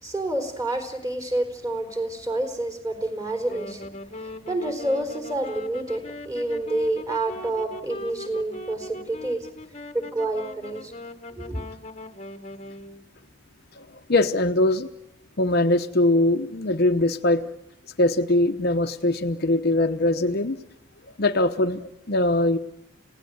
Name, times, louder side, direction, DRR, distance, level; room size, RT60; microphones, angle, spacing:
voice 1, 0.0-3.9 4.2-9.5 9.9-10.9 11.3-11.6, right 1 dB, 15° right, 6 dB, 4.1 m, -28 dB
Wind instrument woodwind instrument, 3.4-13.1, left 2 dB, 30° left, 1.3 m, -40 dB
voice 2, 13.8-14.9 15.4-17.4 18.0-20.6 21.2-22.6, left 1 dB, 50° left, 6 dB, 1.0 m, -22 dB
30.0 x 17.5 x 9.4 m, 0.87 s
head